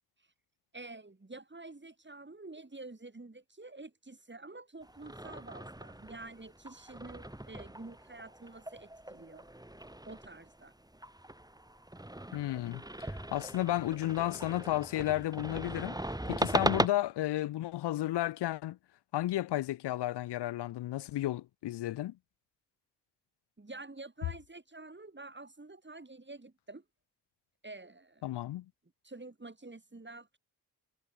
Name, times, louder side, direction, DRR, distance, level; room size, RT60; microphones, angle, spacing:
voice 1, 0.7-9.5 10.1-10.7 23.6-26.8 27.6-28.2 29.0-30.4, right 2 dB, 25° right, 5.2 m, -48 dB
sound 1, 4.8-16.9, right 1 dB, 10° right, 3.1 m, -38 dB
voice 2, 12.3-16.0 16.3-18.8 19.1-22.1 28.2-28.6, left 14 dB, 90° left, 0.8 m, -33 dB
supercardioid pair, 45°, 40 cm